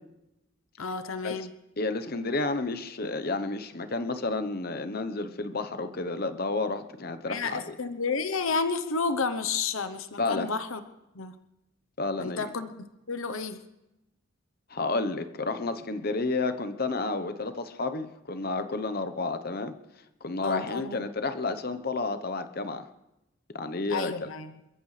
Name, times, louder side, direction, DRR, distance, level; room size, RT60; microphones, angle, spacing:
voice 1, 0.8-1.5 7.3-10.8 11.1-11.3 12.2-13.6 20.4-21.1 23.9-24.5, left 4 dB, 70° left, 11 dB, 0.9 m, -31 dB
voice 2, 1.8-7.7 10.2-10.5 12.0-12.5 14.7-19.7 20.2-22.9 23.5-24.3, left 3 dB, 45° left, 10 dB, 0.9 m, -31 dB
28.5 x 14.5 x 3.3 m, 0.92 s
head